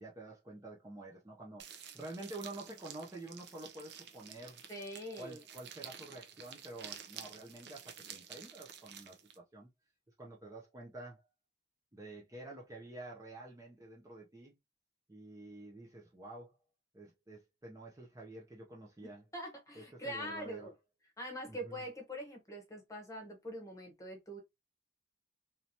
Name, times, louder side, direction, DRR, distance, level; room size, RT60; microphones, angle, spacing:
voice 1, 0.0-4.6 5.2-9.7 10.2-11.2 11.9-14.5 15.1-16.6 16.9-19.2 19.7-20.7 21.5-21.8, right 2 dB, 15° right, 0.6 m, -49 dB
sound 1, 1.6-9.4, right 8 dB, 60° right, 0.6 m, -51 dB
voice 2, 4.7-5.4 19.3-20.7 21.2-24.4, equal, 15° left, 1.0 m, -43 dB
3.1 x 2.8 x 2.7 m
head